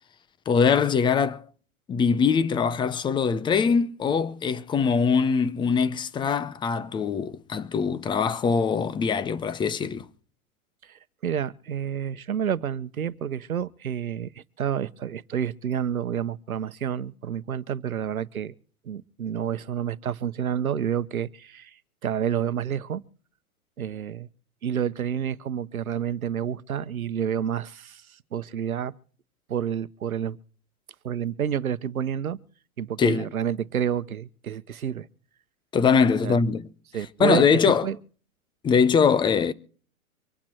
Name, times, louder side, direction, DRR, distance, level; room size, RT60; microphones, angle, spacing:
voice 1, 0.5-1.4 1.9-10.1 33.0-33.3 35.7-36.7 37.2-37.9 38.6-39.5, left 6 dB, 10° left, 0.6 m, -22 dB
voice 2, 10.9-18.5 18.9-21.7 22.0-23.0 23.8-24.3 24.6-28.0 28.3-28.9 29.5-30.4 31.0-32.4 32.8-35.1 36.2-36.4 36.9-38.0, right 9 dB, 85° right, 1.0 m, -29 dB
25.5 x 8.8 x 4.4 m
hypercardioid pair, 120°, 42 cm